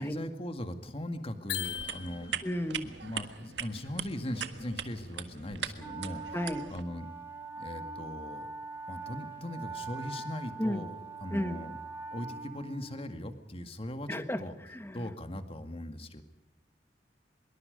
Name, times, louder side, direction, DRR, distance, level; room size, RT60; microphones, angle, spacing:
voice 1, 0.0-2.3 2.8-7.1 7.6-8.5 8.9-10.9 11.2-11.8 12.1-14.5 14.9-16.2, left 1 dB, 35° left, 8 dB, 2.1 m, -39 dB
sound 1, 1.5-2.6, left 10 dB, 65° left, 2.3 m, -38 dB
sound 2, 1.6-6.8, right 8 dB, 80° right, 1.6 m, -40 dB
voice 2, 2.4-2.9 6.3-6.7 10.6-10.9 11.3-11.6 14.1-14.4 14.7-15.1, left 1 dB, 15° left, 9 dB, 1.6 m, -33 dB
Wind instrument woodwind instrument, 5.8-13.3, right 4 dB, 15° right, 5.2 m, -43 dB
25.0 x 22.5 x 5.3 m, 0.91 s
head